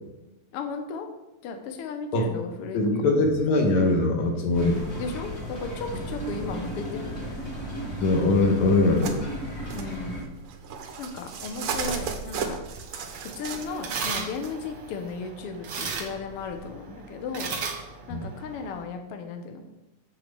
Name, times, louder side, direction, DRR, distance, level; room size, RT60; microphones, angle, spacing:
voice 1, 0.5-1.1 1.4-2.9 5.0-7.4 9.7-10.2 11.0-12.6 13.3-17.5 18.1-19.8, left 4 dB, 80° left, 5 dB, 1.3 m, -35 dB
voice 2, 2.7-4.8 8.0-9.2 18.1-18.2, left 2 dB, 60° left, 2 dB, 2.6 m, -22 dB
sound 1, 4.5-10.2, right 1 dB, 25° left, 2.8 m, -35 dB
sound 2, 9.0-14.5 15.9-16.7, right 6 dB, 80° right, 1.2 m, -36 dB
sound 3, 12.8-18.8, right 5 dB, 60° right, 1.4 m, -36 dB
7.6 x 6.9 x 6.9 m, 0.99 s
omnidirectional pair, 4.0 m